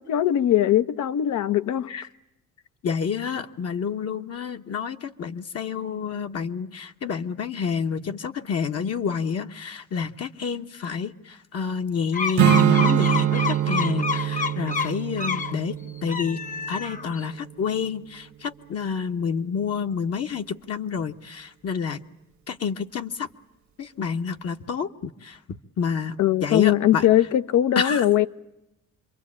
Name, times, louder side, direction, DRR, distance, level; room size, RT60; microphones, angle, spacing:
voice 1, 0.0-1.9 26.2-28.3, left 12 dB, 75° left, 0.9 m, -20 dB
voice 2, 2.8-16.4 16.7-22.0 22.5-23.3 23.8-27.1 27.7-28.0, left 6 dB, 55° left, 1.2 m, -29 dB
sound 1, 12.1-15.5 16.0-17.2, left 6 dB, 25° left, 1.0 m, -29 dB
Strum, 12.4-17.7, right 11 dB, 70° right, 1.2 m, -24 dB
27.0 x 23.0 x 8.7 m
cardioid pair, 90°, 30 cm